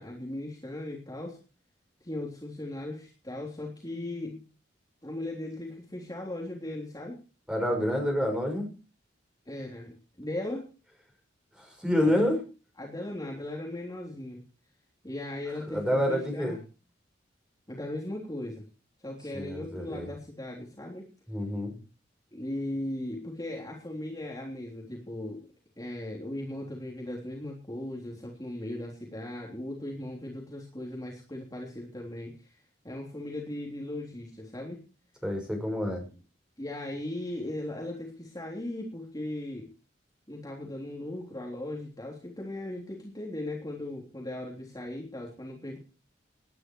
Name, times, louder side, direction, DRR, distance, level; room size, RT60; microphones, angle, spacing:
voice 1, 0.0-1.4 2.0-4.4 5.0-7.2 9.5-10.7 12.0-12.2 12.8-14.4 15.0-16.6 17.7-18.7 19.0-21.1 22.3-25.4 25.8-32.5 32.8-34.8 36.6-39.7 40.3-45.8, left 1 dB, 20° left, -1 dB, 3.5 m, -38 dB
voice 2, 7.5-8.7 11.6-12.4 15.7-16.5 19.3-20.1 21.3-21.7 35.2-36.0, left 1 dB, 5° right, 2 dB, 5.9 m, -28 dB
19.0 x 11.0 x 4.7 m, 0.35 s
head